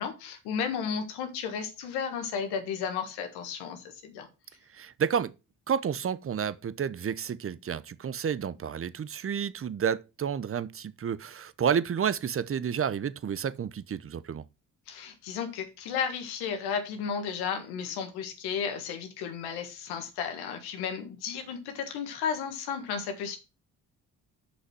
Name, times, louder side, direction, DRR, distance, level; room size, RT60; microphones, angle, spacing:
voice 1, 0.0-4.3 14.9-23.4, left 7 dB, 90° left, 1.6 m, -33 dB
voice 2, 4.7-5.3 5.7-14.4, right 7 dB, 35° right, 0.7 m, -30 dB
6.5 x 5.6 x 6.1 m
supercardioid pair, 55°, 38 cm